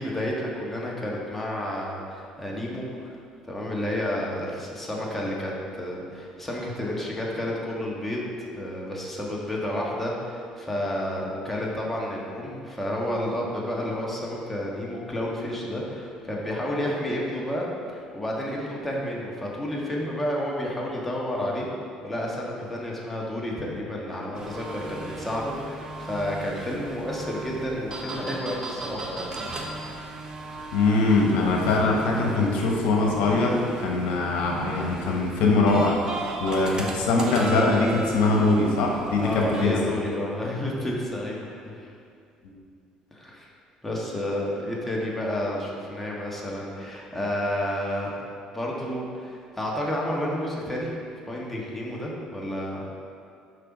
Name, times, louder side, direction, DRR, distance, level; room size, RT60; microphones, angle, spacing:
voice 1, 0.0-3.2 3.5-21.6 22.0-29.3 29.6-29.7 39.2-41.9 43.1-43.5 43.8-48.2 48.5-50.9 51.3-52.9, left 1 dB, 10° left, -3 dB, 1.6 m, -30 dB
sound 1, 24.3-39.6, right 2 dB, 35° right, 1.0 m, -37 dB
voice 2, 30.7-36.0 36.4-39.8 42.4-42.5, left 3 dB, 80° left, -1 dB, 1.2 m, -22 dB
6.7 x 5.6 x 5.4 m, 2.3 s
cardioid pair, 100°, 2 cm